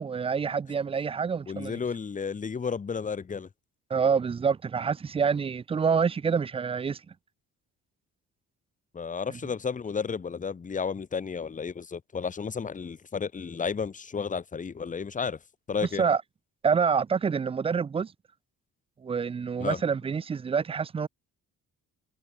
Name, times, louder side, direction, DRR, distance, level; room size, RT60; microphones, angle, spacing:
voice 1, 0.0-1.8 3.9-7.0 16.0-16.2 16.6-18.1 19.0-21.1, right 6 dB, 20° right, 0.3 m, -27 dB
voice 2, 1.5-3.5 8.9-15.4 15.7-16.0 19.6-19.8, left 6 dB, 20° left, 0.7 m, -32 dB
cardioid pair, 80°, 35 cm